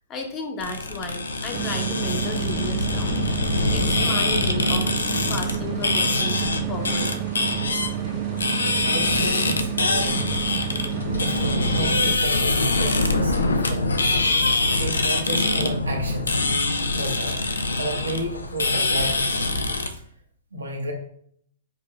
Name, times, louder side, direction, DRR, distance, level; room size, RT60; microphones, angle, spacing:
voice 1, 0.1-3.1 3.7-5.0 5.3-6.4 6.7-7.1, left 3 dB, 25° left, 3 dB, 0.9 m, -33 dB
sound 1, 0.6-19.9, left 2 dB, 80° left, 0.5 m, -24 dB
sound 2, 1.5-12.2, right 13 dB, 30° right, 0.3 m, -30 dB
voice 2, 8.9-10.2 10.5-10.6 11.2-13.9 14.7-16.4 16.9-17.5 17.7-19.5 19.9-20.0 20.5-20.9, right 1 dB, 85° right, 0 dB, 1.3 m, -32 dB
5.0 x 4.2 x 2.3 m, 0.64 s
figure-of-eight pair, 115°, 0 cm